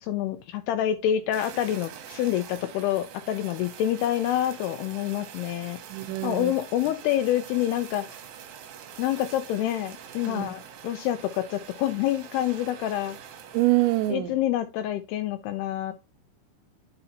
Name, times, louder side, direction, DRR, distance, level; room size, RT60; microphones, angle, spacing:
voice 1, 0.0-5.8 6.2-8.2 9.0-13.2 14.1-15.9, left 12 dB, 85° left, 2.3 m, -27 dB
Fire, 1.3-14.1, right 8 dB, 70° right, 2.4 m, -44 dB
voice 2, 5.9-6.5 10.3-10.5 13.5-14.4, right 17 dB, 85° right, 2.9 m, -25 dB
9.8 x 5.3 x 2.7 m
omnidirectional pair, 5.1 m